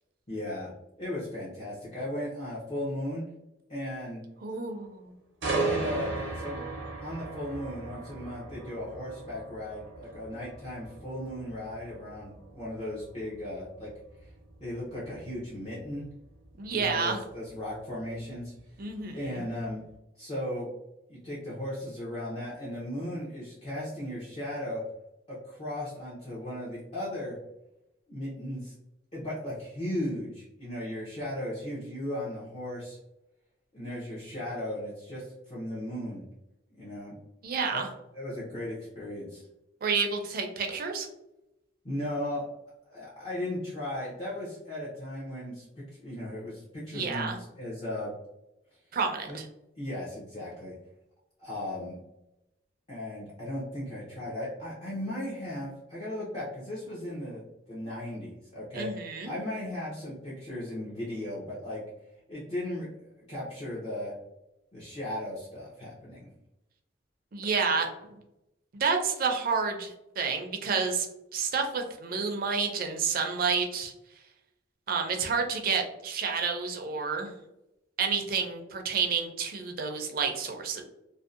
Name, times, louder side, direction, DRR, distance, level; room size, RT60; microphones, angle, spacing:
voice 1, 0.3-0.7 1.0-3.2 3.7-4.2 5.5-6.6 7.0-13.9 14.2-14.3 14.6-16.0 16.7-18.5 19.1-19.8 20.1-20.7 21.1-24.8 25.3-27.4 28.1-28.7 29.1-33.0 33.7-36.2 36.8-37.1 37.7-37.8 38.1-39.4 41.8-42.5 42.9-48.1 49.3-49.4 49.8-50.7 51.4-52.0 52.9-57.4 57.7-61.8 62.3-62.9 63.3-64.1 64.7-66.3, left 1 dB, 30° left, -8 dB, 0.6 m, -36 dB
voice 2, 4.4-5.1 16.6-17.2 18.8-19.4 37.4-37.9 39.8-41.1 46.9-47.4 48.9-49.5 58.7-59.3 67.3-68.2 68.7-71.1 71.3-73.9 74.9-77.3 78.0-80.8, right 5 dB, 50° right, 4 dB, 0.4 m, -30 dB
sound 1, 5.4-19.3 19.7-19.9, right 3 dB, 90° right, 0.6 m, -38 dB
2.6 x 2.0 x 2.4 m, 0.89 s
head